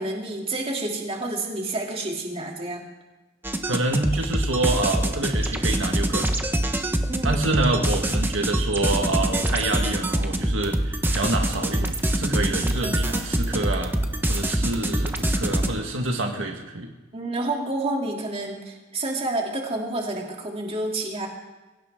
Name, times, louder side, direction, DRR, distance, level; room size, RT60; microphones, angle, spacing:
voice 1, 0.0-2.8 7.1-7.4 14.7-14.9 17.1-21.3, right 2 dB, 30° right, 0 dB, 2.9 m, -29 dB
sound 1, 3.4-15.7, right 1 dB, 10° right, 1.2 m, -25 dB
voice 2, 3.6-6.3 7.2-13.9 14.3-16.9, right 2 dB, 75° right, 2 dB, 1.7 m, -27 dB
23.0 x 17.0 x 3.8 m, 1.2 s
head